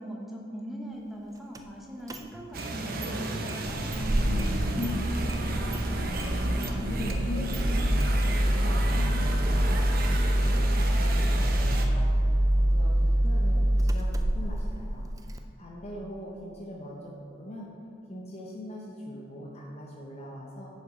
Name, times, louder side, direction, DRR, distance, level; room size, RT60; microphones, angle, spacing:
voice 1, 0.0-5.2, equal, ahead, -2 dB, 0.8 m, -40 dB
Engine starting, 1.5-1.6 2.1-2.7 3.0-3.1 3.5-15.4, equal, 15° right, 0.3 m, -26 dB
sound 1, 2.5-11.9, right 2 dB, 45° right, 0.7 m, -33 dB
sound 2, 3.1-10.5, left 3 dB, 65° left, 1.3 m, -41 dB
voice 2, 6.1-6.5 6.7-17.7 18.1-20.7, equal, 30° left, -3 dB, 0.8 m, -42 dB
6.9 x 6.8 x 4.9 m, 2.6 s
head